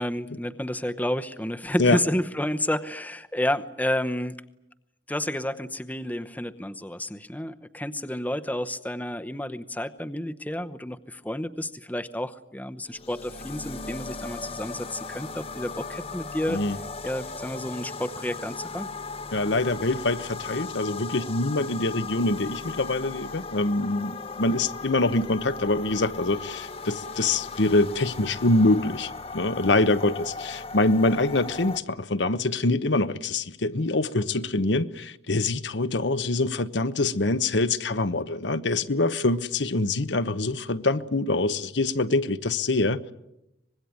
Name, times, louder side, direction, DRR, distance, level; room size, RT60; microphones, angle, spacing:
voice 1, 0.0-4.3 5.1-16.6 17.0-18.9, left 1 dB, 10° left, 0.9 m, -30 dB
sound 1, 12.9-31.8, left 4 dB, 30° left, 1.0 m, -37 dB
voice 2, 19.3-43.1, left 2 dB, 80° left, 1.0 m, -25 dB
25.0 x 21.0 x 9.4 m
head